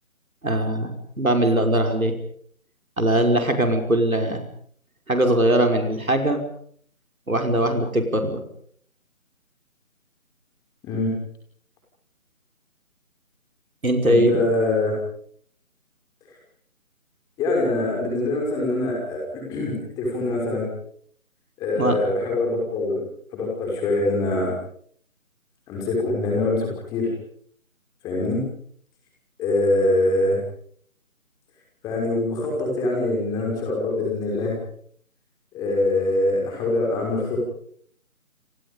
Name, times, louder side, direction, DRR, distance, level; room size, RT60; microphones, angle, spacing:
voice 1, 0.4-2.2 3.0-4.4 5.1-6.4 7.3-8.4 13.8-14.4 21.7-22.0, right 1 dB, 80° right, 4 dB, 5.7 m, -21 dB
voice 2, 14.1-14.9 17.4-20.7 21.6-23.0 23.3-24.5 25.7-27.1 28.0-28.4 29.4-30.4 31.8-34.6 35.5-37.4, left 2 dB, 10° left, -1 dB, 5.9 m, -24 dB
29.5 x 27.5 x 5.5 m, 0.62 s
figure-of-eight pair, 155°, 41 cm